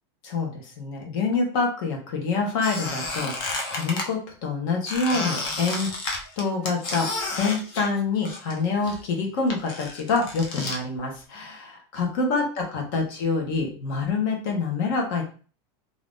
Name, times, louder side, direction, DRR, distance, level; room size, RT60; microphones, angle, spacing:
voice 1, 0.2-5.9 6.4-15.2, left 4 dB, 50° left, 1 dB, 1.1 m, -26 dB
Squeak, 2.6-4.1 4.9-8.6 8.8-10.8, left 2 dB, 30° left, 0.7 m, -31 dB
2.9 x 2.6 x 3.5 m, 0.39 s
supercardioid pair, 170°, 14 cm